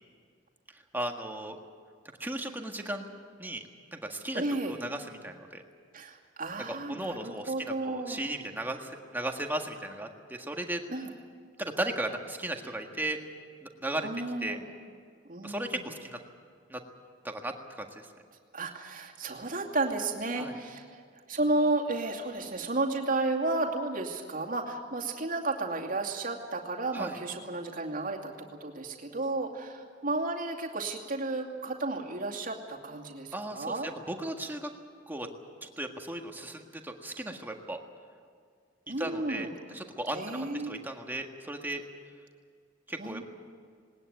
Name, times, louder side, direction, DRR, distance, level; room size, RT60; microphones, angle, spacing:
voice 1, 0.7-1.6 2.2-3.1 3.4-5.6 6.7-10.8 11.6-13.2 13.6-14.1 14.4-14.6 15.4-16.2 16.7-16.8 17.2-18.1 20.4-20.6 26.9-27.2 33.3-34.7 35.1-35.3 35.6-37.8 39.0-41.8 42.9-43.2, right 1 dB, 10° right, 3 dB, 1.7 m, -36 dB
voice 2, 4.3-4.8 5.9-8.2 10.9-11.1 14.0-14.6 15.3-15.8 18.5-21.0 21.3-28.3 28.6-33.9 38.9-39.5 40.1-40.8 43.0-43.2, right 2 dB, 45° right, 0 dB, 2.5 m, -32 dB
19.5 x 19.5 x 9.4 m, 2.1 s
head